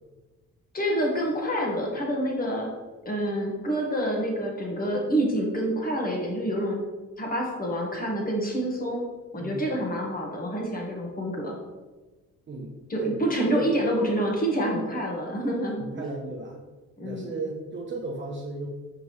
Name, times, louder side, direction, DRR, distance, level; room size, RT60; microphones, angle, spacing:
voice 1, 0.7-2.7 3.0-6.8 7.2-9.0 9.3-11.5 12.9-16.2 17.0-17.3, right 1 dB, 30° left, -1 dB, 1.5 m, -27 dB
voice 2, 15.8-16.6 17.0-18.7, right 3 dB, 40° right, -2 dB, 0.9 m, -35 dB
6.0 x 5.1 x 3.1 m, 1.2 s
cardioid pair, 90°, 30 cm